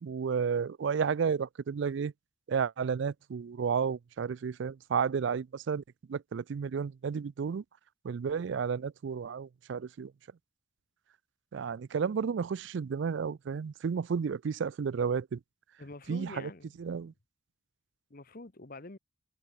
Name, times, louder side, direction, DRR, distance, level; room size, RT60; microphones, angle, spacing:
voice 1, 0.0-2.1 2.5-5.8 6.1-7.6 8.0-10.1 11.5-15.4 16.1-16.5 16.8-17.1, right 6 dB, 60° right, 0.4 m, -32 dB
voice 2, 15.8-17.1 18.1-19.0, left 2 dB, 45° left, 1.2 m, -46 dB
head